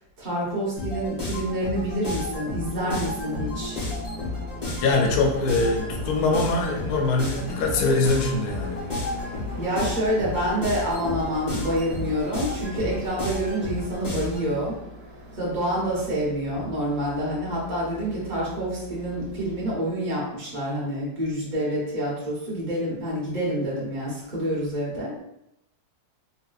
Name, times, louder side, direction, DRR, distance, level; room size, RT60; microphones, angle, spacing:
voice 1, 0.2-3.8 9.6-14.7 15.4-25.2, equal, 30° right, -6 dB, 1.0 m, -27 dB
sound 1, 0.8-14.5, left 2 dB, 45° left, 0.5 m, -33 dB
sound 2, 2.8-19.7, equal, 70° right, 0.7 m, -40 dB
voice 2, 4.8-8.8, left 3 dB, 80° left, 1 dB, 0.8 m, -23 dB
4.0 x 2.5 x 2.3 m, 0.82 s
omnidirectional pair, 2.1 m